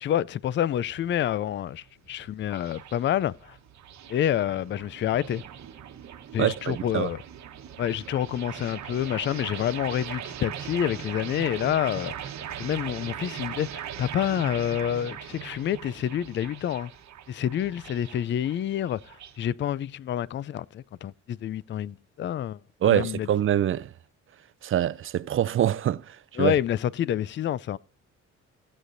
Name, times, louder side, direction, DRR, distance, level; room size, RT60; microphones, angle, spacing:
voice 1, 0.0-3.6 4.1-5.4 6.3-7.2 7.8-12.3 12.6-16.9 17.3-23.3 26.4-27.8, left 10 dB, 40° left, 0.4 m, -28 dB
sound 1, 0.5-19.5, right 9 dB, 65° right, 1.2 m, -40 dB
voice 2, 6.4-7.1 22.8-23.9 24.6-26.6, right 11 dB, 45° right, 0.4 m, -25 dB
17.0 x 8.2 x 2.6 m
cardioid pair, 90°, 30 cm